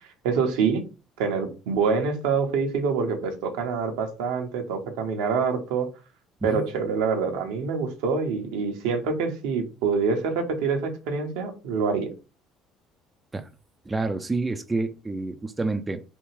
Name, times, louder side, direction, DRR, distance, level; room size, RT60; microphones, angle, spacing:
voice 1, 0.2-0.8 1.2-5.9 6.4-12.1, right 5 dB, 75° right, 4 dB, 0.8 m, -26 dB
voice 2, 13.9-16.0, right 3 dB, 20° right, 8 dB, 0.4 m, -28 dB
3.4 x 2.3 x 3.2 m, 0.31 s
hypercardioid pair, 65°, 0 cm